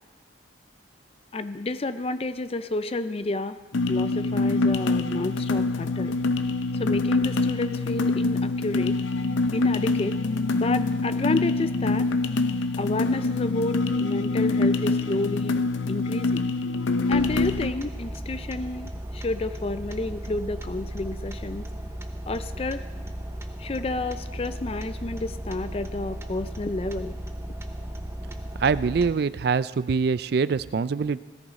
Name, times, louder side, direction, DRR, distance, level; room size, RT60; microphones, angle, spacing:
voice 1, 1.3-3.6 3.9-6.1 6.7-9.0 9.5-10.2 10.5-12.1 12.8-15.6 15.9-16.5 17.1-21.6 22.3-22.8 23.6-27.2, left 2 dB, 30° left, 12 dB, 0.4 m, -30 dB
sound 1, 3.7-17.7, left 3 dB, 75° left, 0.6 m, -25 dB
sound 2, 17.1-29.1, right 1 dB, 15° right, 0.7 m, -36 dB
voice 2, 28.6-31.2, right 5 dB, 55° right, 17 dB, 0.3 m, -24 dB
17.0 x 14.0 x 4.1 m, 1.3 s
head